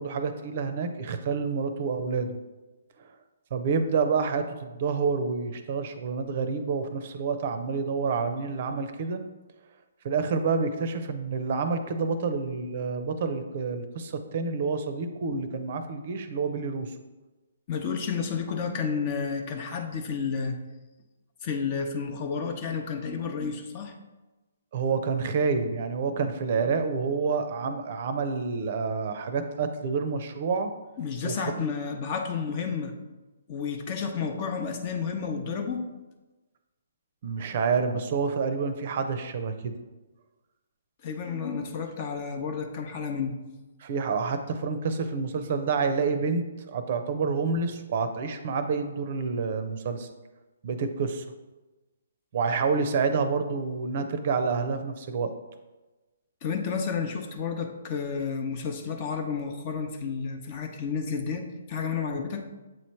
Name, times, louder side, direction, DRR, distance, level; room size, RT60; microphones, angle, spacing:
voice 1, 0.0-2.4 3.0-3.1 3.5-9.2 10.0-16.9 24.7-30.7 31.2-31.6 37.2-39.7 43.8-50.1 50.6-51.3 52.3-55.3, right 5 dB, 50° right, 8 dB, 0.6 m, -28 dB
voice 2, 17.7-20.6 21.4-23.9 31.0-32.9 33.5-35.8 41.0-43.4 56.4-62.4, left 5 dB, 35° left, 5 dB, 0.7 m, -31 dB
7.6 x 3.1 x 4.4 m, 1.1 s
hypercardioid pair, 145°, 0 cm